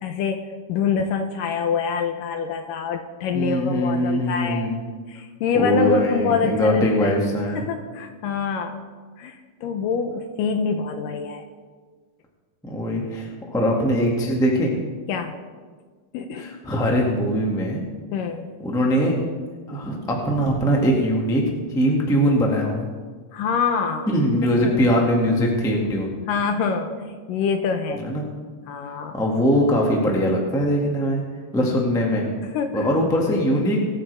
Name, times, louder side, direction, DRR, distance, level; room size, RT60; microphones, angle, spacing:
voice 1, 0.0-4.7 5.1-7.2 7.6-8.8 9.2-11.4 15.1-15.4 16.1-16.5 18.1-18.5 23.3-24.1 24.5-24.8 26.3-28.0 28.7-29.2 32.4-32.9, left 6 dB, 75° left, 6 dB, 2.2 m, -25 dB
voice 2, 3.3-4.8 5.5-7.6 12.6-14.7 16.4-17.8 18.6-19.2 19.7-21.4 21.7-22.9 24.1-26.1 27.9-28.2 29.1-31.2 31.5-32.3 32.7-33.8, equal, 5° left, -1 dB, 0.7 m, -21 dB
22.0 x 9.3 x 3.5 m, 1.5 s
omnidirectional pair, 4.4 m